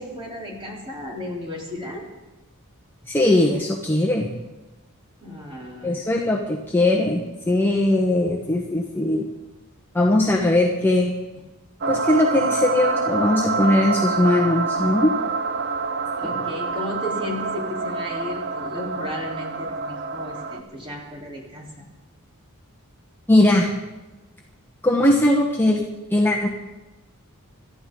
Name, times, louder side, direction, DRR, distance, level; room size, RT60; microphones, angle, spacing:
voice 1, 0.0-2.1 5.2-6.0 16.2-21.8, left 1 dB, 25° right, -2 dB, 3.7 m, -34 dB
voice 2, 3.0-4.3 5.8-9.2 9.9-11.1 11.9-15.1 23.3-23.7 24.8-26.5, left 1 dB, 10° left, -1 dB, 1.2 m, -20 dB
sound 1, 11.8-20.6, right 4 dB, 50° right, 1.0 m, -26 dB
26.5 x 13.0 x 3.9 m, 1.1 s
head